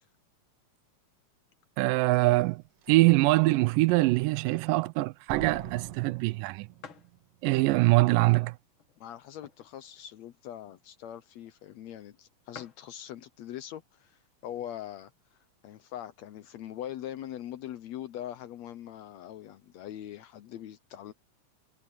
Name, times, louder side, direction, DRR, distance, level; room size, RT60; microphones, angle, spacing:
voice 1, 1.8-2.6 2.9-6.7 7.4-8.6, right 21 dB, 80° right, 2.1 m, -23 dB
Slam, 2.1-2.2 2.8-3.2 5.3-7.2 7.4-7.5, right 11 dB, 65° right, 2.2 m, -40 dB
sound 1, 6.8-7.2 7.8-7.9 8.7-9.9 10.3-10.4 10.5-10.8 11.5-11.6 11.9-12.0 12.2-12.3 12.5-12.9 13.8-14.1 14.7-14.8 15.0-15.8, left 6 dB, 45° left, 1.8 m, -50 dB
voice 2, 9.0-15.1 15.6-21.1, left 11 dB, 75° left, 1.6 m, -42 dB
omnidirectional pair, 4.0 m